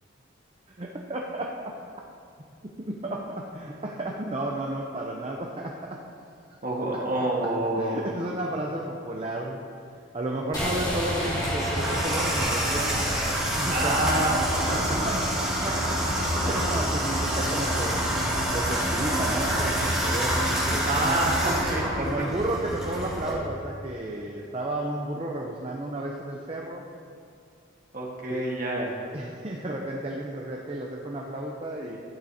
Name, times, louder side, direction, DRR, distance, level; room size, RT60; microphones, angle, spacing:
voice 1, 0.8-1.7 2.8-6.0 7.8-9.6 10.1-13.0 13.6-14.2 14.9-18.0 18.5-21.2 22.0-26.8 28.3-28.4 29.1-32.0, right 1 dB, 30° right, -1 dB, 0.6 m, -33 dB
voice 2, 6.6-8.0 13.7-14.4 20.8-21.8 27.9-28.9, right 1 dB, 45° right, -2 dB, 1.5 m, -27 dB
sound 1, 10.5-14.6, equal, 20° left, 2.5 m, -32 dB
Water tap faucet / Bathtub (filling or washing), 10.5-23.3, equal, 5° right, 2.2 m, -27 dB
12.0 x 9.0 x 2.8 m, 2.3 s
head